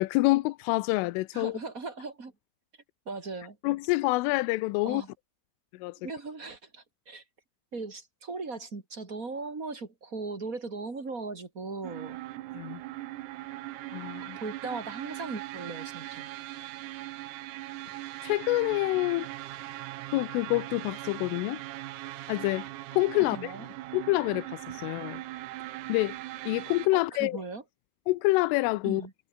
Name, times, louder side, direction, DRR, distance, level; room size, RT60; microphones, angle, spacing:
voice 1, 0.0-1.6 3.6-5.0 5.8-5.9 12.5-12.8 13.9-14.4 18.2-19.3 20.1-21.6 22.3-22.7 22.9-23.4 23.9-25.2 25.9-26.1 26.5-27.4 28.1-29.0, left 21 dB, 85° left, 3.2 m, -27 dB
voice 2, 1.3-2.3 3.0-3.6 4.8-5.1 6.0-7.2 7.7-12.2 14.4-16.3 23.3-23.7 26.9-27.6 28.8-29.1, right 3 dB, 25° right, 2.0 m, -38 dB
sound 1, 11.8-26.9, right 17 dB, 85° right, 4.0 m, -40 dB
omnidirectional pair, 6.0 m